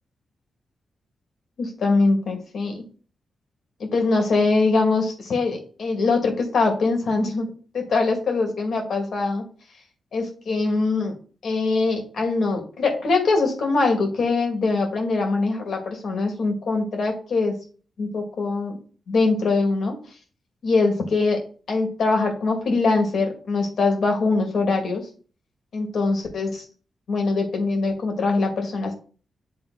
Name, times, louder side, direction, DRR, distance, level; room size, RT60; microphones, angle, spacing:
voice 1, 1.6-2.8 3.8-9.4 10.1-11.1 11.4-17.5 18.0-18.8 19.1-20.0 20.6-21.4 21.7-25.1 25.7-26.6 27.1-28.9, left 3 dB, 70° left, 3 dB, 2.3 m, -22 dB
9.1 x 3.6 x 4.0 m, 0.39 s
cardioid pair, 55°, 0 cm